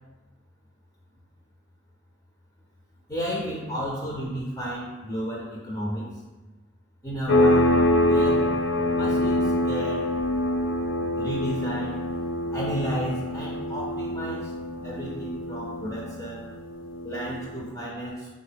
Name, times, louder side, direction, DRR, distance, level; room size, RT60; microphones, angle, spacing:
voice 1, 3.1-6.1 7.0-7.7 8.0-8.4 8.9-10.1 11.2-12.0 12.5-14.5 14.8-16.5 17.0-18.3, right 1 dB, 20° left, -4 dB, 0.6 m, -32 dB
sound 1, 7.3-17.6, left 1 dB, 65° left, 0.5 m, -25 dB
3.7 x 3.6 x 3.4 m, 1.2 s
head